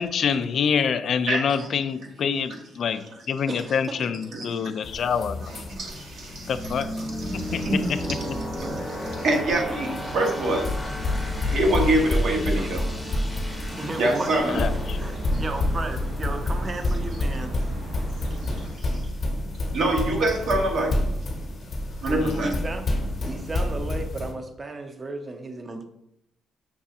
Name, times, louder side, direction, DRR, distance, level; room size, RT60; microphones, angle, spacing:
voice 1, 0.0-5.6 6.5-7.0 7.5-8.0 14.5-15.0 22.2-22.5, left 6 dB, 60° left, 11 dB, 0.3 m, -26 dB
voice 2, 1.3-1.7 4.3-4.6 5.8-6.5 7.0-8.3 8.6-10.7 11.4-12.9 14.0-14.5 19.7-21.0 22.0-22.5, right 1 dB, 65° right, 1 dB, 0.9 m, -25 dB
sound 1, 4.8-24.3, left 1 dB, 40° left, 0.7 m, -29 dB
sound 2, 6.1-17.8, left 1 dB, 5° left, 0.7 m, -36 dB
sound 3, 7.3-18.7, right 1 dB, 85° right, 1.4 m, -39 dB
voice 3, 13.7-14.7 15.0-17.7 18.8-19.2 22.1-22.8 23.2-25.8, right 2 dB, 30° right, 6 dB, 0.5 m, -34 dB
5.9 x 2.4 x 2.7 m, 0.80 s
cardioid pair, 90°, 0 cm